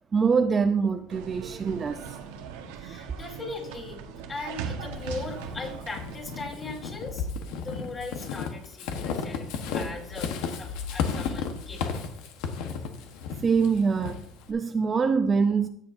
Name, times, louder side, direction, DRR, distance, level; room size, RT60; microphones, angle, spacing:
voice 1, 0.1-2.0 13.4-14.2 14.5-15.7, right 5 dB, 30° right, 0.5 m, -24 dB
sound 1, 1.1-6.5, right 6 dB, 90° right, 1.3 m, -39 dB
voice 2, 2.8-4.0 4.3-7.3 7.6-12.1, left 3 dB, 25° left, 3.7 m, -39 dB
Walk footsteps / Squeak, 4.9-14.5, left 6 dB, 75° left, 1.1 m, -34 dB
14.5 x 7.4 x 2.6 m
supercardioid pair, 110°, 0 cm